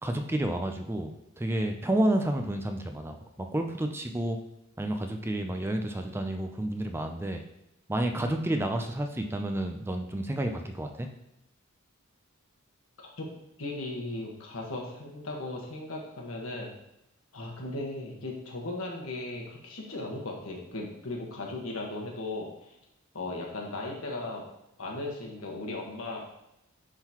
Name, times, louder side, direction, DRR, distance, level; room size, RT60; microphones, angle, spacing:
voice 1, 0.0-1.1 1.4-4.4 4.8-7.4 7.9-11.1, right 1 dB, 10° right, 5 dB, 0.4 m, -30 dB
voice 2, 13.6-16.7 17.3-22.7 23.1-24.4 24.8-26.3, left 2 dB, 80° left, -1 dB, 1.4 m, -37 dB
9.9 x 3.9 x 3.0 m, 0.86 s
head